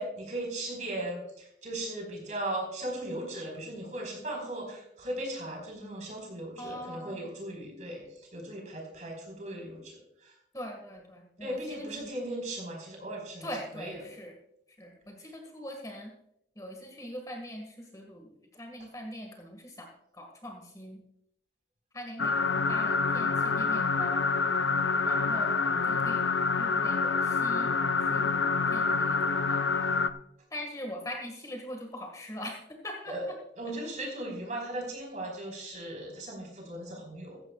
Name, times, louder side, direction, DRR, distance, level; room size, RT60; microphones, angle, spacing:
voice 1, 0.0-10.3 11.4-14.0 15.2-15.3 33.1-33.3 33.6-37.4, right 1 dB, 40° right, 1 dB, 4.6 m, -37 dB
voice 2, 6.6-7.3 10.5-11.9 13.4-14.3 14.8-16.1 16.6-21.0 21.9-24.3 25.0-26.3 26.6-27.7 28.1-29.6 30.5-32.6 32.8-33.1, equal, 20° left, 2 dB, 1.8 m, -42 dB
sound 1, 22.2-30.1, left 4 dB, 90° left, 0.6 m, -27 dB
16.0 x 14.5 x 2.4 m, 0.74 s
head